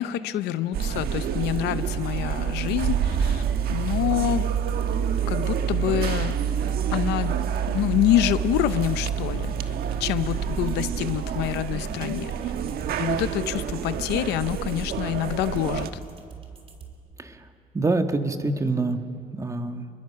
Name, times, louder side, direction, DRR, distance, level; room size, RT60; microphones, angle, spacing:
voice 1, 0.0-3.4 3.7-4.5 5.3-6.4 6.9-7.3 7.7-9.7 10.0-12.3 13.0-15.9, left 13 dB, 85° left, 13 dB, 0.8 m, -26 dB
sound 1, 0.7-15.9, right 8 dB, 65° right, 1.3 m, -27 dB
sound 2, 0.9-16.9, right 5 dB, 35° right, 3.3 m, -43 dB
voice 2, 17.7-19.0 19.3-19.9, right 3 dB, 20° right, 6 dB, 1.5 m, -26 dB
29.5 x 22.5 x 5.8 m, 2.4 s
cardioid pair, 110°, 17 cm